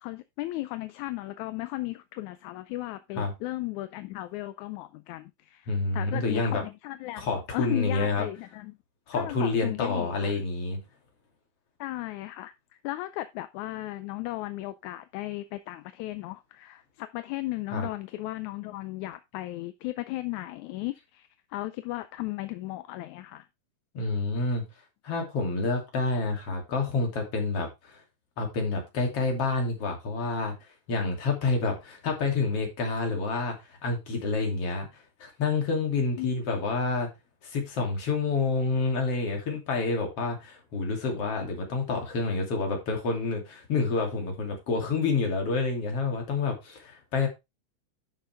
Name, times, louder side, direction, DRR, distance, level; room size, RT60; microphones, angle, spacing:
voice 1, 0.0-8.8 9.1-10.4 11.8-12.5 12.8-23.5 36.2-36.3, left 17 dB, 80° left, 1.9 m, -36 dB
voice 2, 5.7-6.6 7.2-8.3 9.1-10.8 17.7-17.9 23.9-24.6 25.0-28.0 28.4-30.5 30.9-37.1 37.4-47.3, left 3 dB, 45° left, 3.7 m, -28 dB
11.5 x 6.6 x 3.4 m
omnidirectional pair, 3.7 m